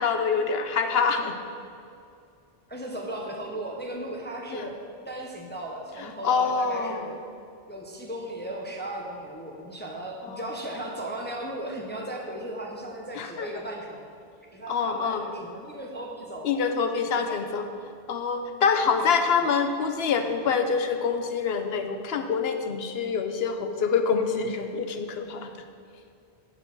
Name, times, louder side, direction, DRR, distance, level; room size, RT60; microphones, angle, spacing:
voice 1, 0.0-1.4 4.5-4.7 6.0-7.0 10.2-10.4 13.2-13.5 14.7-15.2 16.4-17.7 18.1-25.5, left 5 dB, 80° left, 7 dB, 0.9 m, -26 dB
voice 2, 2.7-4.8 5.1-7.2 7.7-14.1 14.5-16.5 17.0-17.5 17.8-17.9 19.0-19.1, right 1 dB, 10° left, 0 dB, 0.8 m, -36 dB
7.7 x 7.1 x 6.0 m, 2.5 s
omnidirectional pair, 1.0 m